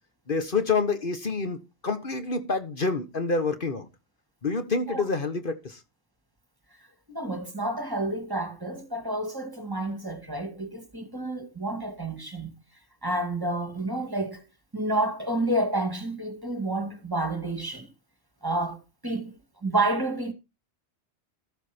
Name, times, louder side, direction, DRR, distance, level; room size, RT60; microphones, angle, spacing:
voice 1, 0.3-3.9 4.4-5.8, left 4 dB, 50° left, 1.4 m, -27 dB
voice 2, 7.1-12.5 13.0-14.4 14.7-17.9 18.4-18.8 19.0-20.3, right 2 dB, 20° right, 2.2 m, -29 dB
14.0 x 8.0 x 4.5 m
omnidirectional pair, 1.1 m